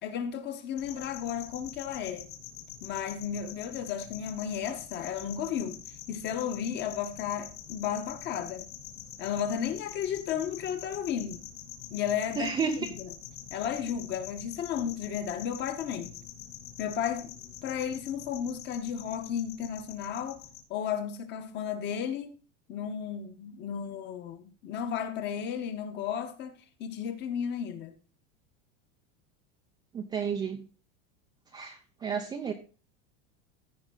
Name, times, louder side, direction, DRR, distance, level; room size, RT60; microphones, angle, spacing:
voice 1, 0.0-2.3 2.8-5.8 6.1-8.7 9.2-11.4 11.9-13.1 13.5-16.1 16.8-17.3 17.6-20.4 20.7-22.4 22.7-27.9, left 8 dB, 30° left, 1.1 m, -33 dB
sound 1, 0.8-20.6, left 10 dB, 85° left, 2.4 m, -46 dB
voice 2, 12.4-12.8 29.9-30.6 31.5-32.5, right 6 dB, 10° right, 0.4 m, -31 dB
15.0 x 5.2 x 3.7 m
supercardioid pair, 170°, 36 cm